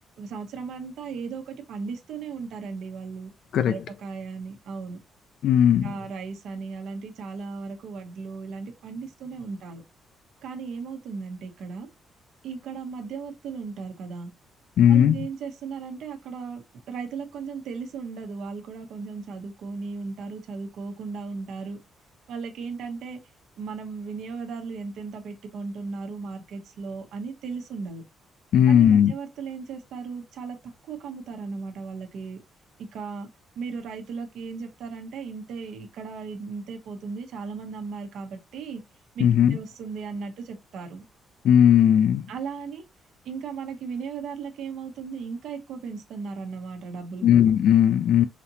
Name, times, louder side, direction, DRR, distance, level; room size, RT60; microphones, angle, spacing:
voice 1, 0.2-3.3 3.7-5.0 5.7-9.8 10.4-11.9 12.4-14.3 14.9-21.8 22.3-23.2 23.6-28.0 28.7-30.6 30.8-32.4 32.8-33.3 33.6-38.8 39.1-41.0 42.3-42.9 43.2-47.5, right 5 dB, 70° right, 1.0 m, -36 dB
voice 2, 5.4-5.9 14.8-15.2 28.5-29.1 39.2-39.6 41.4-42.3 47.2-48.3, left 9 dB, 60° left, 0.3 m, -17 dB
4.9 x 2.9 x 2.7 m
cardioid pair, 165°, 0 cm